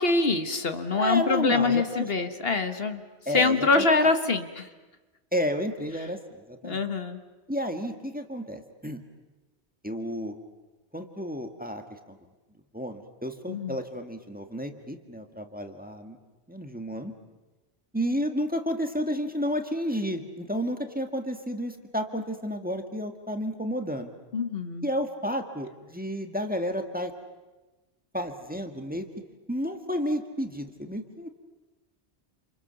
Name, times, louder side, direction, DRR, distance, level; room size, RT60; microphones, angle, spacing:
voice 1, 0.0-3.0 3.3-4.7 6.6-7.2 13.5-13.8 24.3-24.9, left 4 dB, 60° left, 8 dB, 1.5 m, -25 dB
voice 2, 1.0-2.1 3.3-4.1 5.3-6.8 7.5-9.0 9.8-10.3 10.9-12.2 12.7-16.2 16.5-17.1 17.9-24.1 24.8-27.1 28.1-29.1 29.5-31.4, equal, 10° right, 5 dB, 1.8 m, -31 dB
28.5 x 28.0 x 7.0 m, 1.2 s
omnidirectional pair, 1.2 m